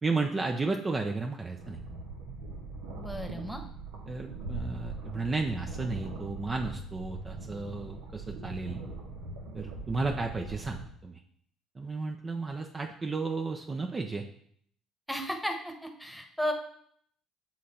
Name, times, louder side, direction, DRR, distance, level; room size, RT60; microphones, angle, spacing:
voice 1, 0.0-1.8 4.1-8.8 9.5-11.2 11.8-14.2, right 3 dB, 30° right, 3 dB, 0.6 m, -33 dB
sound 1, 1.6-10.9, right 3 dB, 80° right, 1.2 m, -41 dB
voice 2, 3.0-3.6 15.1-16.5, equal, ahead, 4 dB, 1.2 m, -34 dB
7.5 x 3.7 x 4.3 m, 0.65 s
hypercardioid pair, 60°, 0 cm